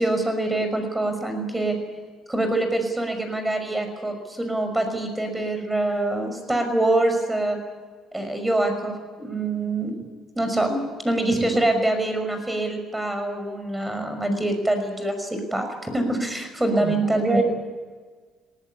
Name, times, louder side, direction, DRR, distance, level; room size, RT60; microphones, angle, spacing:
voice 1, 0.0-1.8 2.3-7.6 8.1-9.9 10.4-17.4, right 2 dB, 10° right, 6 dB, 5.7 m, -25 dB
voice 2, 16.7-17.4, right 3 dB, 25° right, 7 dB, 5.8 m, -25 dB
19.0 x 19.0 x 10.0 m, 1.5 s
cardioid pair, 110°, 0 cm